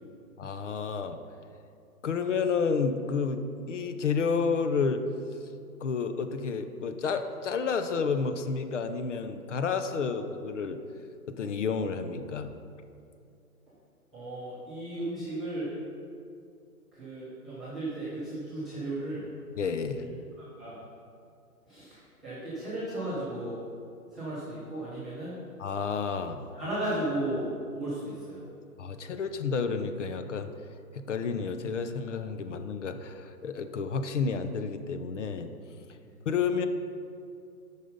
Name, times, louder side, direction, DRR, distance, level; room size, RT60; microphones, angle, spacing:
voice 1, 0.4-1.2 2.0-5.0 5.8-10.8 11.3-12.5 19.6-20.1 25.6-26.4 28.8-30.5 30.9-35.5 36.3-36.7, left 5 dB, 50° left, 9 dB, 0.6 m, -30 dB
voice 2, 14.1-15.7 16.9-19.2 19.9-20.2 20.6-20.8 21.7-23.5 24.1-25.3 26.5-28.4 36.0-36.1, right 1 dB, ahead, -14 dB, 0.4 m, -35 dB
7.5 x 5.5 x 5.1 m, 2.4 s
hypercardioid pair, 145°, 46 cm